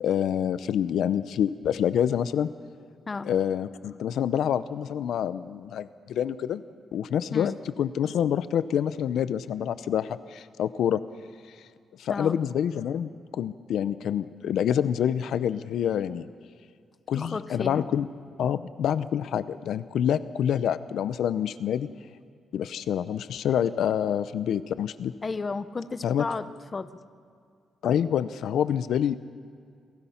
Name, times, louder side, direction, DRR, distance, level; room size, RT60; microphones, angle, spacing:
voice 1, 0.0-2.5 3.2-6.6 6.9-7.5 7.8-11.0 12.0-16.3 17.1-18.1 18.4-21.9 22.5-25.1 26.0-26.2 27.8-29.2, left 9 dB, 75° left, 14 dB, 0.6 m, -27 dB
voice 2, 17.1-17.8 25.2-26.9, left 4 dB, 25° left, 11 dB, 0.7 m, -33 dB
28.5 x 19.0 x 5.8 m, 2.3 s
wide cardioid pair, 170°, 0 cm